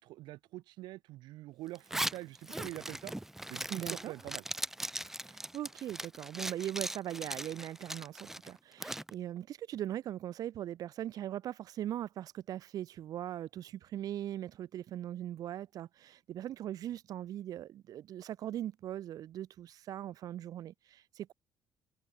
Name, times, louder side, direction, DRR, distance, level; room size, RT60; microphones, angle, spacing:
voice 1, 0.0-3.1 3.5-4.4, right 17 dB, 80° right, 3.4 m, -45 dB
Zipper (clothing), 1.7-9.1, right 1 dB, 5° right, 2.3 m, -39 dB
voice 2, 3.7-4.1 5.3-21.3, right 12 dB, 55° right, 4.7 m, -40 dB
cardioid pair, 145°, 7 cm